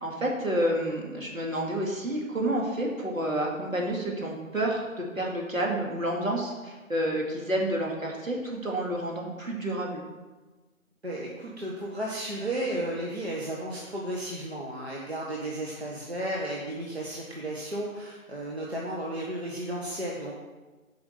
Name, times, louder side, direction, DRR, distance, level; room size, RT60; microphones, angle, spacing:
voice 1, 0.0-10.0, right 1 dB, 70° right, -1 dB, 2.6 m, -29 dB
voice 2, 11.0-20.3, right 1 dB, 50° right, -3 dB, 1.5 m, -33 dB
7.6 x 5.4 x 6.7 m, 1.2 s
figure-of-eight pair, 170°, 42 cm